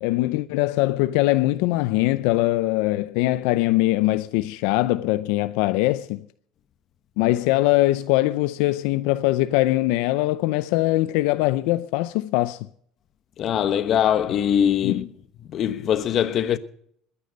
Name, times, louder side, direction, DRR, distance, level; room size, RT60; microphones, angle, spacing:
voice 1, 0.0-6.3 7.2-12.7 14.8-14.9, left 18 dB, 85° left, 0.5 m, -22 dB
voice 2, 13.4-15.1 15.4-16.6, left 9 dB, 45° left, 1.2 m, -22 dB
21.0 x 9.8 x 5.3 m
cardioid pair, 130°, 0 cm